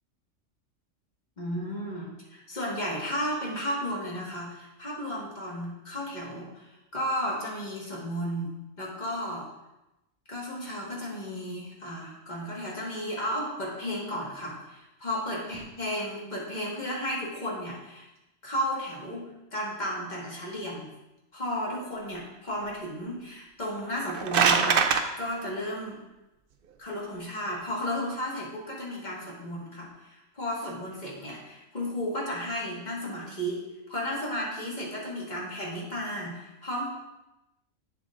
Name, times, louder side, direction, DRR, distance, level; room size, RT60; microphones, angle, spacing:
voice 1, 1.4-9.5 10.3-18.1 18.4-20.9 21.3-26.0 26.8-36.9, equal, 35° left, -4 dB, 1.7 m, -34 dB
sound 1, 23.9-25.0, right 6 dB, 60° right, 0.6 m, -22 dB
8.0 x 7.5 x 2.5 m, 0.95 s
omnidirectional pair, 1.4 m